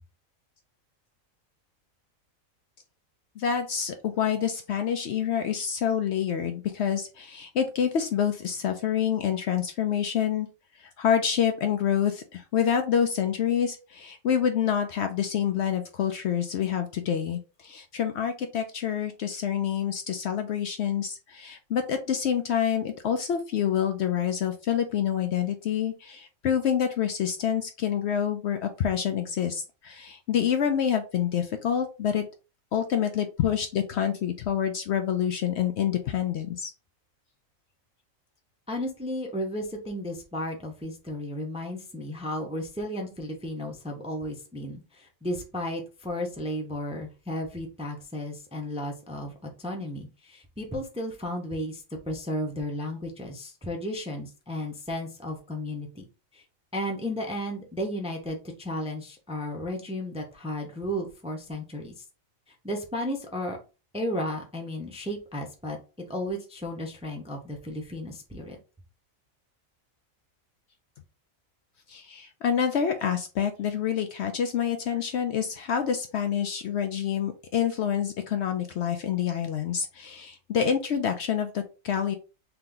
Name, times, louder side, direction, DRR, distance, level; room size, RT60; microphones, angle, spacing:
voice 1, 3.4-10.5 10.8-32.3 32.7-36.7 71.9-82.1, left 8 dB, 65° left, 6 dB, 0.7 m, -27 dB
voice 2, 38.7-56.0 56.3-56.4 56.7-62.0 62.6-63.6 63.9-65.8 66.1-68.6, left 1 dB, 5° right, 2 dB, 0.5 m, -34 dB
3.4 x 2.9 x 3.8 m, 0.32 s
omnidirectional pair, 1.4 m